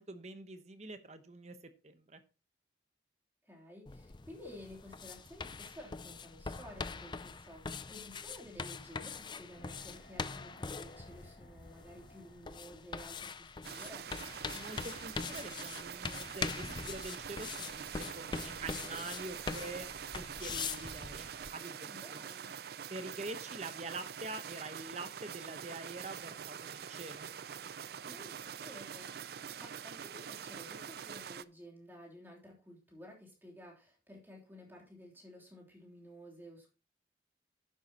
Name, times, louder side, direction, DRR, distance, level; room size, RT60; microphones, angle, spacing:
voice 1, 0.0-1.6 1.8-2.2 14.5-17.9 18.1-22.2 22.9-27.3, right 2 dB, 35° right, 9 dB, 1.0 m, -45 dB
voice 2, 3.4-14.1 21.9-22.5 28.1-36.7, equal, 10° right, -2 dB, 3.2 m, -53 dB
sound 1, 3.9-21.5, left 4 dB, 25° left, 0.4 m, -43 dB
sound 2, 9.2-14.4 14.7-14.8, left 1 dB, 55° left, 2.9 m, -60 dB
sound 3, 13.6-31.4, right 8 dB, 55° right, 0.4 m, -45 dB
11.0 x 9.4 x 2.9 m, 0.33 s
head